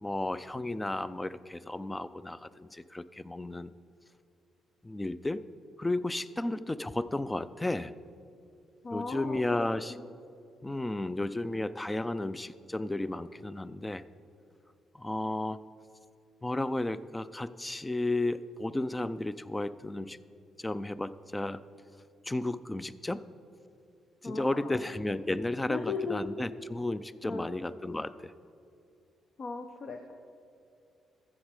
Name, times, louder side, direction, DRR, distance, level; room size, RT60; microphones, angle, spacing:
voice 1, 0.0-3.7 4.8-5.4 5.8-7.9 8.9-10.0 10.6-14.0 14.9-15.6 16.4-20.2 20.6-21.6 22.2-23.2 24.2-28.3, left 2 dB, 15° left, 16 dB, 0.4 m, -33 dB
voice 2, 8.8-10.0 24.2-24.8 25.7-26.2 27.2-27.5 29.4-30.1, left 4 dB, 50° left, 4 dB, 0.7 m, -37 dB
13.5 x 7.4 x 4.8 m, 2.6 s
cardioid pair, 90°, 0 cm